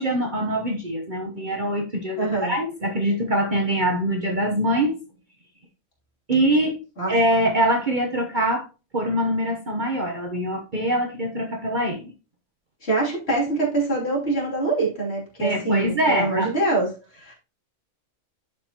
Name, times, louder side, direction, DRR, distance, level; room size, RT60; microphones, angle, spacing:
voice 1, 0.0-4.9 6.3-6.8 7.1-8.7 8.9-12.0 15.4-16.5, right 1 dB, 40° right, 2 dB, 1.1 m, -23 dB
voice 2, 2.2-2.5 7.0-7.1 12.8-16.9 17.1-17.3, right 2 dB, 50° left, -3 dB, 3.3 m, -24 dB
11.0 x 5.1 x 3.0 m, 0.31 s
omnidirectional pair, 1.4 m